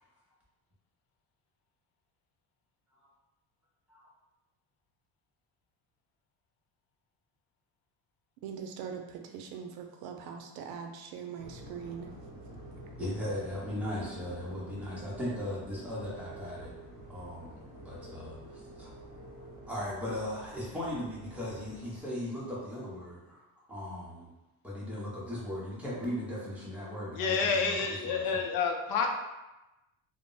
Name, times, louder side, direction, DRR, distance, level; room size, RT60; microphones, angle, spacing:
voice 1, 8.4-12.1, right 7 dB, 85° right, 4 dB, 0.5 m, -42 dB
sound 1, 11.4-22.0, right 2 dB, 45° right, 0.8 m, -48 dB
voice 2, 13.0-16.7 17.1-18.9 19.7-23.4 23.7-24.3 24.6-27.7 28.0-28.4, left 1 dB, 5° right, -7 dB, 0.7 m, -38 dB
voice 3, 27.1-29.1, left 5 dB, 70° left, 2 dB, 0.5 m, -29 dB
2.1 x 2.0 x 3.7 m, 1.0 s
cardioid pair, 150°, 36 cm